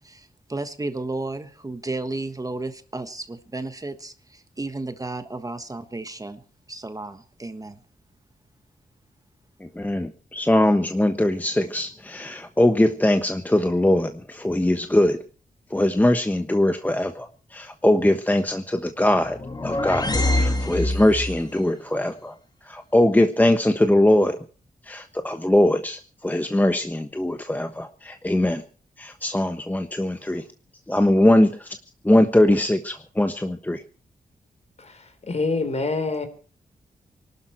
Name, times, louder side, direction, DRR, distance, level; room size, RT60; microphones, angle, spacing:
voice 1, 0.0-6.4 6.7-7.8, right 2 dB, 25° right, 1.4 m, -33 dB
voice 2, 9.6-15.2 15.7-22.3 22.6-24.4 24.9-28.6 29.0-30.4 30.9-31.8 32.0-33.8, left 1 dB, 10° left, 1.2 m, -21 dB
sound 1, 19.2-21.5, left 1 dB, 25° left, 2.4 m, -24 dB
voice 3, 34.8-36.3, left 3 dB, 45° left, 3.9 m, -26 dB
25.0 x 12.5 x 4.5 m
wide cardioid pair, 100°, 15 cm